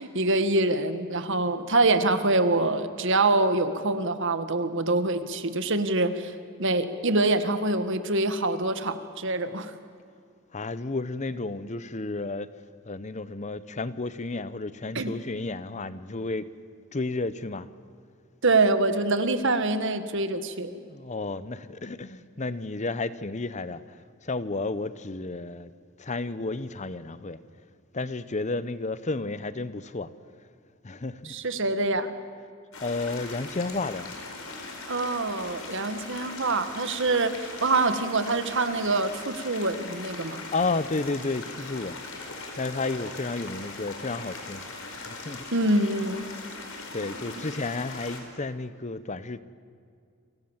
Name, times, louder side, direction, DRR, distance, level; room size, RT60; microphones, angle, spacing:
voice 1, 0.0-6.3 6.6-9.7 15.0-15.1 18.4-20.7 31.2-32.1 34.9-40.4 45.5-46.2, right 2 dB, 60° right, 1.7 m, -25 dB
voice 2, 10.5-12.5 12.9-16.5 16.9-17.7 20.6-25.7 26.0-27.4 27.9-30.1 30.8-31.4 32.8-34.1 40.5-42.0 42.6-44.6 44.9-45.5 46.9-49.4, left 3 dB, 35° left, 0.8 m, -32 dB
sound 1, 32.7-48.2, left 3 dB, 75° left, 4.8 m, -40 dB
30.0 x 24.5 x 7.3 m
head